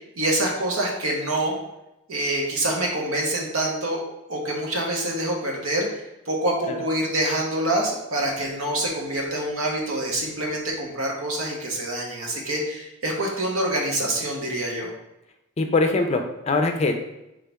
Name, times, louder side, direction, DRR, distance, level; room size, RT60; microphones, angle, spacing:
voice 1, 0.2-1.5 2.1-4.0 4.3-14.9, right 1 dB, 85° right, -1 dB, 1.1 m, -26 dB
voice 2, 15.6-17.0, left 3 dB, 30° left, 4 dB, 0.4 m, -22 dB
4.0 x 3.7 x 3.4 m, 0.90 s
head